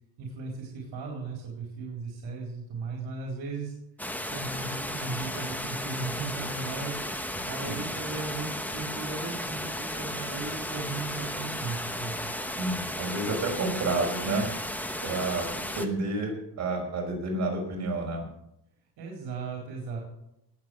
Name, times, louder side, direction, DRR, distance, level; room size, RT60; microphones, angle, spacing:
voice 1, 0.2-3.7 4.2-7.0 7.4-12.2 19.0-20.0, right 3 dB, 60° right, -2 dB, 4.3 m, -37 dB
sound 1, 4.0-15.9, left 1 dB, 5° left, 1.0 m, -34 dB
voice 2, 12.5-14.5 15.0-15.5 15.8-18.2, right 2 dB, 40° right, 0 dB, 5.6 m, -30 dB
19.5 x 8.1 x 6.5 m, 0.82 s
cardioid pair, 140°, 43 cm